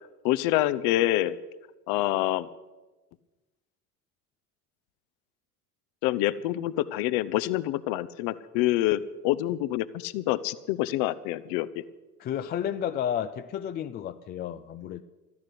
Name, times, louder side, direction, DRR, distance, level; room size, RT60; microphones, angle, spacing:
voice 1, 0.2-1.4 1.9-2.5 6.0-11.7, left 15 dB, 50° left, 0.8 m, -26 dB
voice 2, 12.2-15.0, left 9 dB, 20° left, 0.4 m, -32 dB
13.5 x 10.5 x 8.1 m
figure-of-eight pair, 65°, 47 cm